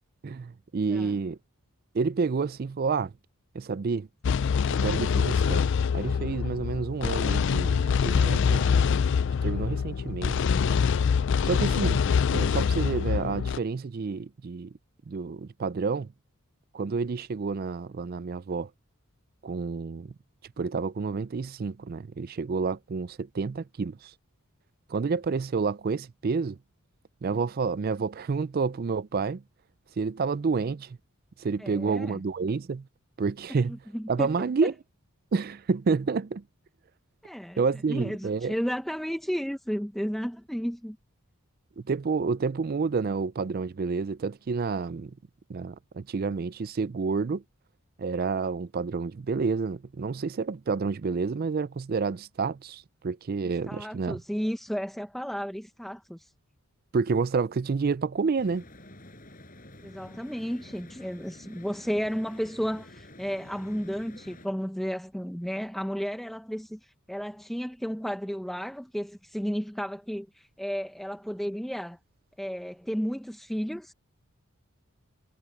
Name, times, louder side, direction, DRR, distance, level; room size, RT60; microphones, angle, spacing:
voice 1, 0.2-1.4 1.9-3.1 3.5-4.1 4.7-5.6 5.9-8.7 9.4-10.4 11.4-12.0 12.3-14.7 15.1-16.1 16.7-18.7 19.4-20.1 20.6-24.1 24.9-26.6 27.2-29.4 30.0-31.0 31.4-32.9 33.2-33.8 34.1-34.7 35.3-36.4 37.6-38.5 41.8-45.1 45.5-47.4 48.0-54.2 56.9-58.6, right 4 dB, 45° right, 0.4 m, -29 dB
sound 1, 4.2-13.6, left 6 dB, 55° left, 0.4 m, -25 dB
voice 2, 31.6-32.2 33.5-34.3 37.2-37.6 37.9-41.0 53.7-56.3 59.8-72.0 72.4-73.9, equal, ahead, 0.6 m, -33 dB
sound 2, 58.4-64.5, left 1 dB, 40° left, 7.9 m, -49 dB
head